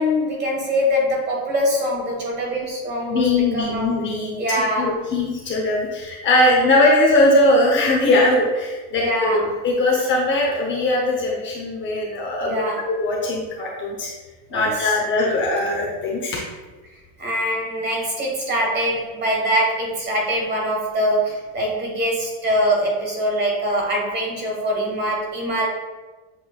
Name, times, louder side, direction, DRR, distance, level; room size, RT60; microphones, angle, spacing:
voice 1, 0.0-3.9 4.4-5.0 8.9-9.5 12.4-12.8 14.5-14.9 17.2-25.7, equal, 25° right, -1 dB, 1.3 m, -23 dB
voice 2, 3.1-14.1 14.5-16.4, left 2 dB, 30° left, -2 dB, 0.7 m, -20 dB
7.5 x 3.1 x 2.3 m, 1.3 s
supercardioid pair, 145°, 38 cm